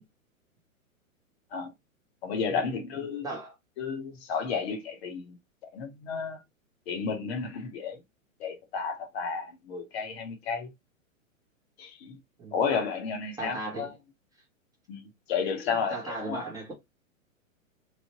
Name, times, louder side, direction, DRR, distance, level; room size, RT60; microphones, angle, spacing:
voice 1, 2.2-3.3 3.8-5.3 5.7-6.4 6.9-8.0 8.4-10.7 11.8-12.2 12.5-13.9 14.9-16.4, left 5 dB, 50° left, 0.8 m, -32 dB
voice 2, 3.2-3.5 12.4-12.6 13.4-13.9 15.9-16.7, right 2 dB, 10° right, 0.6 m, -37 dB
3.1 x 2.1 x 2.7 m
hypercardioid pair, 125°, 41 cm